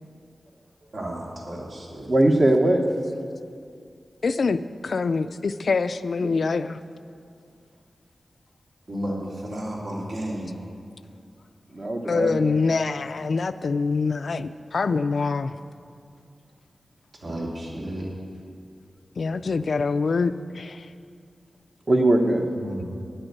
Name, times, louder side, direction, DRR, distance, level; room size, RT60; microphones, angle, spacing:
voice 1, 0.9-2.1 8.9-10.5 17.2-18.1 22.5-22.8, right 1 dB, 70° right, -4 dB, 2.8 m, -32 dB
voice 2, 2.1-2.8 6.2-6.3 11.7-12.6 21.9-22.5, right 1 dB, 40° right, 3 dB, 1.0 m, -20 dB
voice 3, 4.2-6.8 12.1-15.5 19.2-20.9, left 4 dB, 70° left, 12 dB, 0.4 m, -25 dB
9.7 x 8.9 x 8.2 m, 2.3 s
wide cardioid pair, 100°, 0 cm